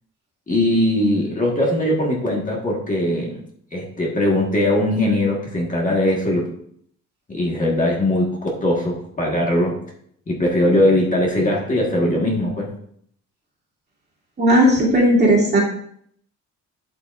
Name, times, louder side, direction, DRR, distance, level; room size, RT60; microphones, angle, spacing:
voice 1, 0.5-3.4 3.7-6.5 7.3-9.8 10.3-12.7, left 1 dB, 25° left, -2 dB, 1.6 m, -20 dB
voice 2, 14.4-15.6, equal, 30° right, -4 dB, 2.6 m, -15 dB
11.0 x 6.0 x 2.5 m, 0.65 s
cardioid pair, 155°, 32 cm